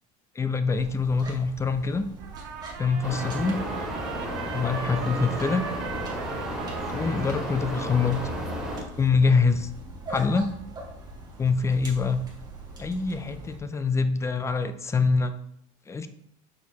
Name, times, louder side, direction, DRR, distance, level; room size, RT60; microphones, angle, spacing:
voice 1, 0.4-2.1 2.8-3.6 4.5-5.7 6.9-8.3 9.0-9.7 10.1-10.5 11.4-12.2 12.8-15.3 15.9-16.1, left 4 dB, 15° left, 10 dB, 0.5 m, -25 dB
sound 1, 0.8-13.6, right 1 dB, 20° right, 1.8 m, -42 dB
Trumpet, 2.2-9.0, right 6 dB, 60° right, 1.3 m, -39 dB
sound 2, 3.0-8.8, equal, ahead, 2.7 m, -33 dB
6.5 x 4.5 x 4.1 m, 0.74 s
supercardioid pair, 125°, 19 cm